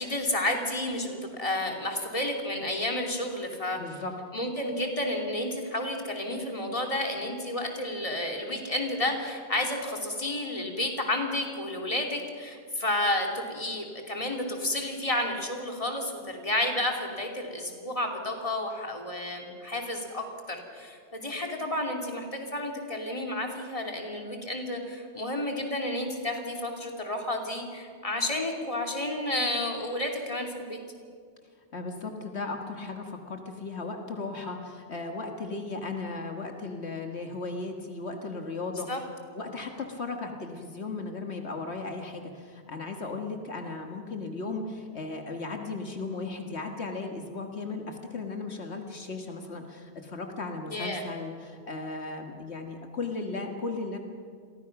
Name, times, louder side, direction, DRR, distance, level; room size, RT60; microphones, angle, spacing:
voice 1, 0.0-3.8 4.3-30.8 38.9-39.0 50.7-51.0, left 1 dB, 30° left, 2 dB, 2.9 m, -31 dB
voice 2, 3.8-4.1 31.7-39.0 39.4-54.0, left 3 dB, 75° left, 3 dB, 2.0 m, -36 dB
30.0 x 23.0 x 6.0 m, 2.1 s
omnidirectional pair, 1.1 m